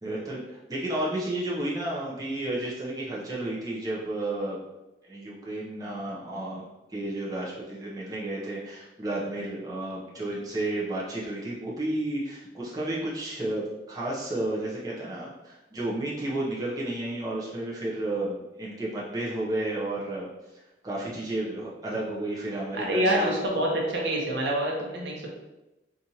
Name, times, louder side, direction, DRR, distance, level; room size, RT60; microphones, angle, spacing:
voice 1, 0.0-0.4 0.7-4.6 5.0-6.6 6.9-20.3 20.8-23.3, right 1 dB, 20° right, -6 dB, 0.6 m, -32 dB
voice 2, 22.7-25.3, right 1 dB, 70° right, -1 dB, 0.8 m, -26 dB
4.2 x 2.5 x 2.8 m, 0.98 s
head